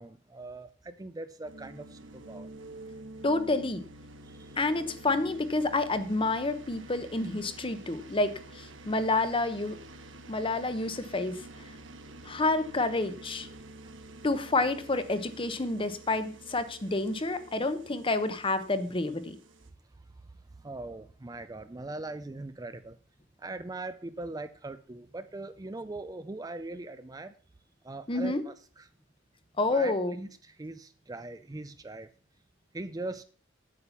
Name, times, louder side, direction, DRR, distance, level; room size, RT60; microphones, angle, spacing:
voice 1, 0.0-2.0 2.3-2.5 4.2-4.6 13.5-13.9 20.6-23.0 23.4-27.3 27.8-28.9 29.7-32.1 32.7-33.2, right 2 dB, 20° right, 11 dB, 0.5 m, -41 dB
sound 1, 1.4-19.7, right 2 dB, 70° right, 1.3 m, -49 dB
voice 2, 3.2-3.8 4.6-9.7 10.3-11.4 12.3-13.5 14.2-19.4 28.1-28.4 29.6-30.1, left 2 dB, 25° left, 11 dB, 0.9 m, -29 dB
8.6 x 8.5 x 5.7 m, 0.40 s
head